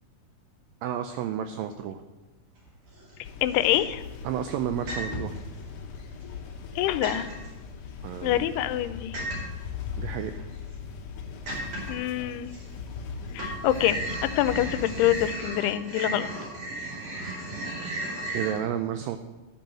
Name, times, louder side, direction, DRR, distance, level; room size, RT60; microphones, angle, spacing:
voice 1, 0.8-2.0 4.2-5.3 8.0-8.5 10.0-10.4 18.3-19.2, right 10 dB, 85° right, 8 dB, 2.0 m, -31 dB
sound 1, 2.7-3.1 3.5-4.1 4.9-5.4 6.0-6.7 7.0-7.5 9.1-9.7 10.3-10.4 10.8-10.9 11.5-12.1 12.5-13.1 13.3-18.5, right 1 dB, 55° right, 4.1 m, -35 dB
sound 2, 3.2-15.3, left 6 dB, 70° left, 2.1 m, -39 dB
voice 2, 3.4-4.0 6.8-7.3 8.2-9.2 11.9-12.5 13.3-16.3, left 13 dB, 90° left, 13 dB, 2.6 m, -25 dB
12.0 x 5.4 x 7.5 m, 1.1 s
omnidirectional pair, 4.6 m